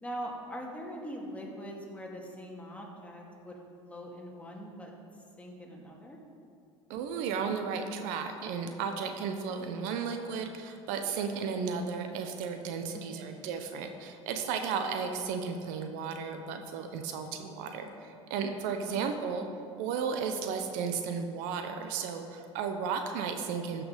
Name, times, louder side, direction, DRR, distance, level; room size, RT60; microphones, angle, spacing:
voice 1, 0.0-3.6 3.8-4.9 5.4-6.2 12.9-13.5, equal, 10° left, -1 dB, 2.2 m, -42 dB
voice 2, 6.9-19.4 19.8-23.8, right 6 dB, 65° right, 6 dB, 1.0 m, -34 dB
14.0 x 6.1 x 5.2 m, 2.5 s
hypercardioid pair, 75°, 15 cm